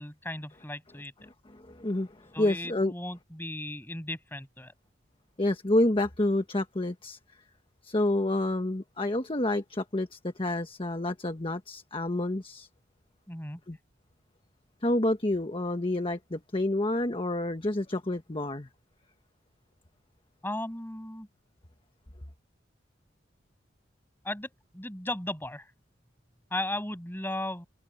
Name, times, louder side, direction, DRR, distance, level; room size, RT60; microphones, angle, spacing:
voice 1, 0.0-1.1 2.3-4.7 13.3-13.6 20.4-21.3 24.2-25.7 26.5-27.7, left 1 dB, 10° left, 7.7 m, -36 dB
voice 2, 1.2-2.9 5.4-7.2 7.8-12.7 13.7-13.8 14.8-18.7, left 1 dB, 30° left, 1.3 m, -29 dB
head